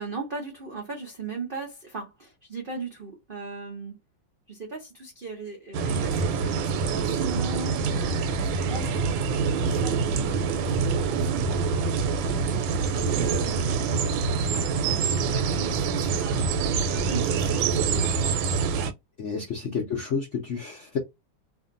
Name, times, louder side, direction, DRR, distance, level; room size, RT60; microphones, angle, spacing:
voice 1, 0.0-3.9 4.5-11.0 11.3-11.5 12.4-14.0 14.4-16.5 16.8-18.1 19.3-19.9, right 4 dB, 65° right, 0.5 m, -39 dB
sound 1, 5.7-18.9, right 5 dB, 85° right, 1.3 m, -25 dB
voice 2, 19.2-21.0, left 5 dB, 80° left, 0.6 m, -30 dB
2.7 x 2.6 x 2.5 m
omnidirectional pair, 2.1 m